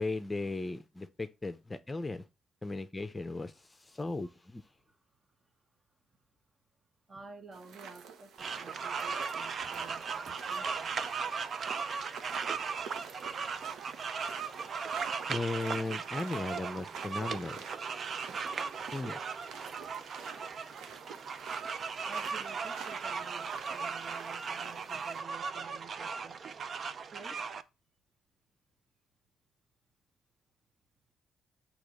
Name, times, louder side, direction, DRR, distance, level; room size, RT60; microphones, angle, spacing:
voice 1, 0.0-2.2 2.6-4.6 15.3-17.6 18.9-19.2, left 2 dB, 20° left, 0.6 m, -36 dB
voice 2, 7.1-11.0 22.0-26.4 27.1-27.4, right 4 dB, 30° right, 1.0 m, -52 dB
sound 1, 7.5-25.2, right 6 dB, 80° right, 0.8 m, -49 dB
sound 2, 8.4-27.6, right 5 dB, 50° right, 0.5 m, -37 dB
6.1 x 3.0 x 5.0 m
cardioid pair, 90°, 0 cm